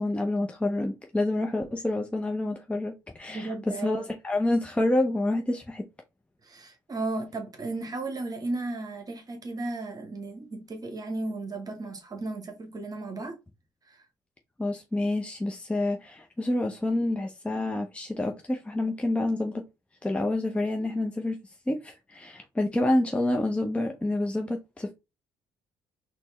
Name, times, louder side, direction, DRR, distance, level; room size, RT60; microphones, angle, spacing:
voice 1, 0.0-5.8 14.6-19.6 20.0-21.4 21.7-24.9, left 1 dB, 10° left, 0.6 m, -28 dB
voice 2, 3.3-4.1 6.4-13.4 13.9-14.0, right 2 dB, 35° right, 1.0 m, -35 dB
4.1 x 2.1 x 3.4 m
hypercardioid pair, 50°, 11 cm